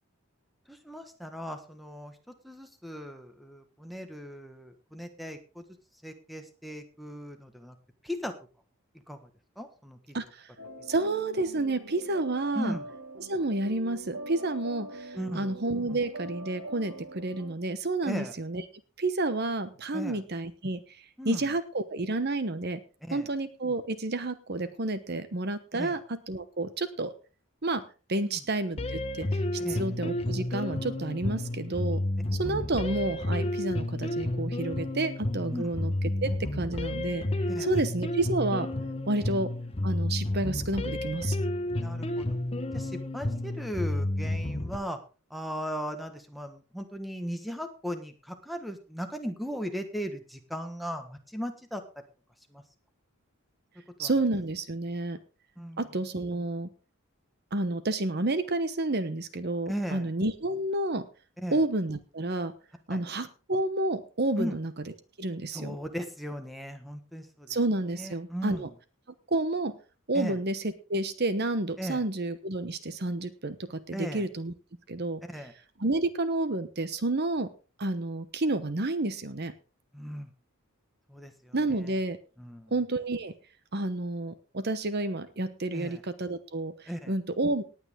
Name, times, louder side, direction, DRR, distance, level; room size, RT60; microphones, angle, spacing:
voice 1, 0.7-2.2 2.4-5.6 6.0-7.8 8.0-8.3 9.1-9.3 9.6-10.2 12.5-12.9 15.2-15.6 18.0-18.3 19.9-20.2 21.2-21.5 23.0-23.3 25.7-26.0 28.2-28.4 29.6-29.9 35.5-35.8 37.5-37.8 39.2-39.3 41.7-42.3 42.7-45.0 45.3-51.8 52.5-52.6 54.0-54.1 55.6-55.9 59.7-60.1 61.4-61.6 62.9-63.0 64.4-64.6 65.5-67.6 67.9-68.7 70.1-70.4 71.8-72.1 73.9-74.3 75.3-75.5 79.9-80.3 81.1-82.0 82.4-82.7 85.7-86.0 86.9-87.1, equal, ahead, 7 dB, 1.4 m, -37 dB
voice 2, 10.1-10.5 10.9-12.8 13.2-18.6 19.0-22.8 23.1-26.0 26.3-27.1 27.6-32.0 32.4-35.9 36.2-37.2 37.6-38.7 39.1-39.5 39.8-41.4 54.0-55.2 55.8-56.7 57.5-61.1 61.5-62.5 62.9-64.7 65.2-65.8 67.5-68.7 69.3-69.8 70.1-74.5 74.9-75.2 75.8-77.5 77.8-79.5 81.5-82.2 82.7-83.3 83.7-87.6, right 2 dB, 50° right, 12 dB, 1.0 m, -30 dB
sound 1, 10.6-17.6, right 1 dB, 70° right, 2.4 m, -43 dB
sound 2, 28.8-44.8, left 1 dB, 30° left, 1.1 m, -31 dB
19.0 x 8.8 x 3.6 m, 0.34 s
head